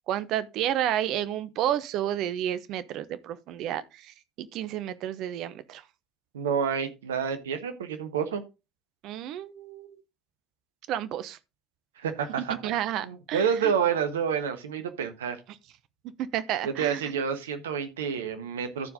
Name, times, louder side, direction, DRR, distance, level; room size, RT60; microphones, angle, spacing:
voice 1, 0.1-5.8 9.0-10.0 10.9-11.4 12.6-13.7 16.3-17.0, right 11 dB, 55° right, 0.9 m, -31 dB
voice 2, 6.3-8.4 12.0-12.6 13.0-15.4 16.6-18.9, right 7 dB, 75° right, 1.2 m, -29 dB
13.5 x 4.8 x 3.8 m
figure-of-eight pair, 60°, 0 cm